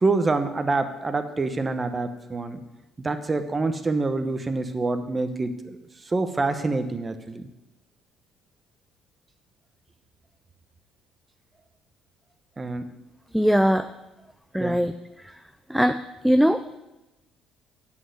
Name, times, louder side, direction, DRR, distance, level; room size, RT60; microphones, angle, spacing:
voice 1, 0.0-2.6 3.0-5.8 6.1-7.5 12.6-12.8 14.6-14.8, right 3 dB, 25° right, 9 dB, 1.0 m, -26 dB
voice 2, 13.3-13.9 14.5-14.9 15.7-16.8, equal, ahead, 9 dB, 0.4 m, -21 dB
7.5 x 6.4 x 7.9 m, 0.98 s
supercardioid pair, 85°, 0 cm